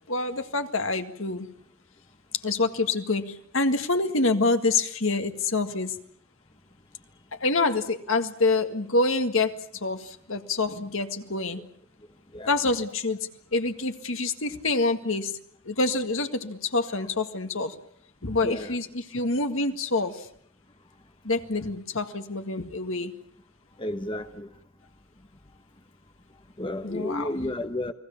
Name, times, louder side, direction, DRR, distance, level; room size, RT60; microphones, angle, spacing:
voice 1, 0.1-1.5 2.4-6.0 7.3-11.6 12.5-15.3 15.6-17.8 18.2-20.3 21.2-23.1 26.8-27.3, left 3 dB, 60° left, 8 dB, 1.9 m, -26 dB
voice 2, 18.4-18.8 23.8-24.5 26.6-27.9, left 1 dB, 20° left, 7 dB, 1.1 m, -32 dB
30.0 x 20.5 x 7.3 m, 0.65 s
head